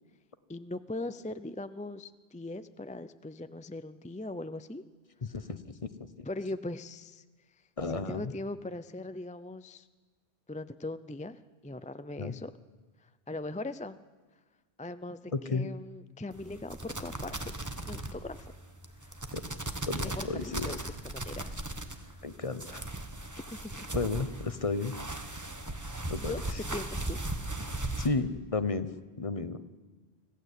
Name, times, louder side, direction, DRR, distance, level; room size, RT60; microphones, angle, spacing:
voice 1, 0.5-4.8 6.2-7.2 7.8-9.9 10.5-12.5 13.0-14.0 14.8-17.3 17.8-18.5 19.0-19.2 20.0-21.5 21.9-22.3 23.5-23.9 26.2-27.6, left 2 dB, 10° left, 12 dB, 0.3 m, -40 dB
voice 2, 5.2-5.9 6.2-6.3 7.8-8.3 12.2-12.4 15.3-15.7 19.3-19.4 19.9-20.7 22.2-22.9 23.9-24.9 26.1-26.3 28.0-28.9 29.2-29.6, left 3 dB, 35° left, 12 dB, 0.9 m, -32 dB
sound 1, 16.3-28.1, right 2 dB, 15° right, 1.2 m, -38 dB
25.0 x 16.0 x 8.4 m, 1.3 s
omnidirectional pair, 1.1 m